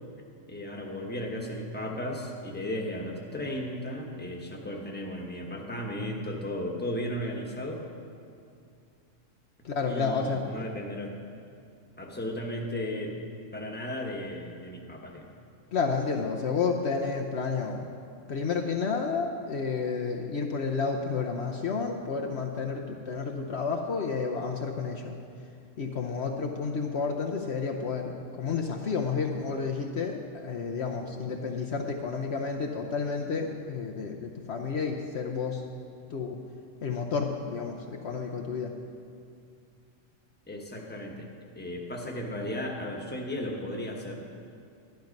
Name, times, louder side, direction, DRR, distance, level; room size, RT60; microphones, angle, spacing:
voice 1, 0.5-7.8 9.9-11.1 12.0-13.2 13.5-15.3 40.5-41.3 41.6-44.4, left 1 dB, 10° left, 0 dB, 1.2 m, -35 dB
voice 2, 9.6-10.5 15.7-17.9 18.3-25.2 25.8-28.1 28.4-35.7 36.1-36.4 36.8-38.7, left 5 dB, 60° left, 1 dB, 1.0 m, -31 dB
12.0 x 11.5 x 5.3 m, 2.4 s
omnidirectional pair, 1.3 m